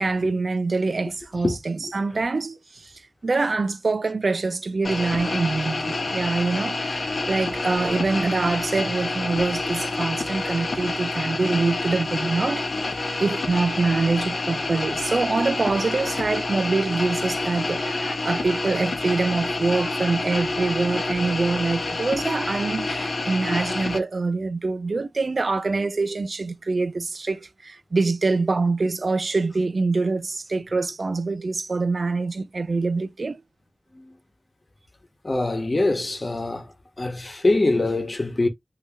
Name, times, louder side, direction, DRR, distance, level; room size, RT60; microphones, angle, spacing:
voice 1, 0.0-2.9 3.2-33.4, right 3 dB, 65° right, 0.3 m, -25 dB
sound 1, 4.8-24.0, left 2 dB, 70° left, 0.7 m, -28 dB
voice 2, 35.2-36.6 37.0-38.5, left 2 dB, 40° left, 1.0 m, -23 dB
2.8 x 2.8 x 3.4 m
wide cardioid pair, 90°, 0 cm